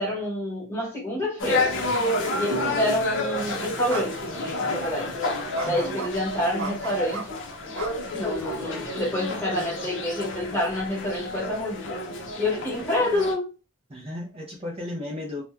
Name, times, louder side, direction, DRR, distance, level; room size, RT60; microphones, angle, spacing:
voice 1, 0.0-1.7 2.4-5.1 5.6-7.4 8.1-11.8 12.4-13.5, left 1 dB, 10° left, 1.3 m, -28 dB
sound 1, 1.4-13.3, left 2 dB, 55° left, 0.6 m, -30 dB
sound 2, 2.5-5.9, right 4 dB, 45° right, 1.0 m, -40 dB
sound 3, 3.9-4.1 4.4-4.5 5.6-6.1 6.6-7.3 7.8-8.5, right 4 dB, 85° right, 0.6 m, -34 dB
voice 2, 5.6-6.1 13.9-15.4, left 1 dB, 25° right, 0.6 m, -35 dB
2.9 x 2.2 x 3.3 m
head